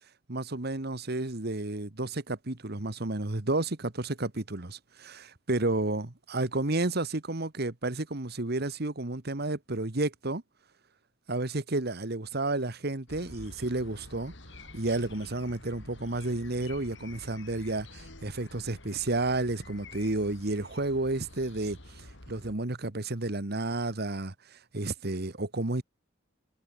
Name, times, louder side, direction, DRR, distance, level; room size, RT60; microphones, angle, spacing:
voice 1, 0.3-10.4 11.3-14.3 14.7-25.8, right 2 dB, 55° right, 1.7 m, -31 dB
sound 1, 13.1-22.5, left 2 dB, 65° left, 7.9 m, -49 dB
head